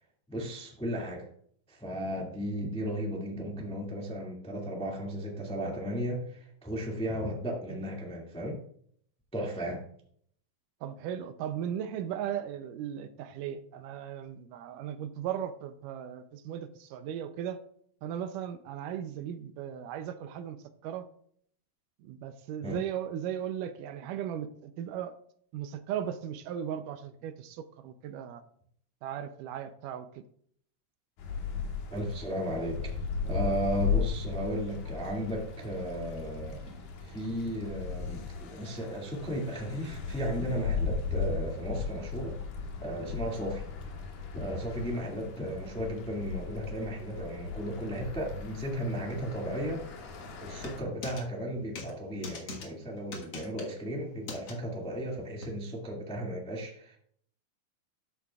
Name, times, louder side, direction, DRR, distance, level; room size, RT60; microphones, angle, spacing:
voice 1, 0.3-1.3 1.7-8.6 9.3-9.8 22.6-22.8 31.9-32.9 33.2-36.7 37.0-42.4 42.8-43.6 44.3-50.1 50.4-57.0, equal, 5° left, -2 dB, 1.0 m, -35 dB
voice 2, 10.8-17.6 18.0-20.6 20.8-21.1 22.0-25.2 25.5-28.4 29.0-30.2 33.2-33.4, right 9 dB, 80° right, 10 dB, 2.2 m, -37 dB
sound 1, 31.2-50.8, left 5 dB, 75° left, 2.9 m, -36 dB
sound 2, 50.6-51.2 51.8-51.9 52.2-52.7 53.1-53.7 54.3-54.5 55.4-55.5, left 4 dB, 50° left, 2.2 m, -41 dB
12.5 x 8.5 x 2.3 m, 0.63 s
omnidirectional pair, 3.8 m